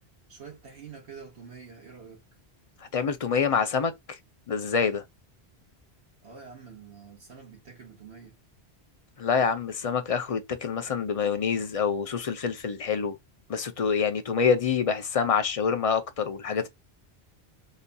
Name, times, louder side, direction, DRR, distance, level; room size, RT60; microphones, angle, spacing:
voice 1, 0.3-2.2 6.2-8.4, right 6 dB, 85° right, 1.9 m, -46 dB
voice 2, 2.9-4.2 4.5-5.0 9.2-13.2 13.5-16.7, left 6 dB, 45° left, 0.5 m, -26 dB
4.0 x 2.7 x 2.2 m
omnidirectional pair, 1.1 m